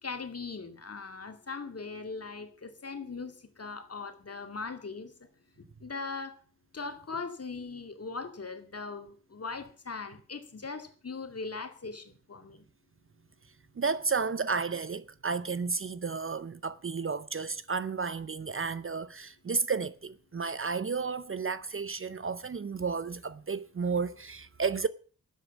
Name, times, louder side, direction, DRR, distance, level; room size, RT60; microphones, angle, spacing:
voice 1, 0.0-5.1 5.8-6.4 6.7-12.6, left 4 dB, 45° left, 2.3 m, -40 dB
voice 2, 13.7-24.9, right 5 dB, 40° right, 0.7 m, -32 dB
12.5 x 8.4 x 7.2 m
wide cardioid pair, 105°, 34 cm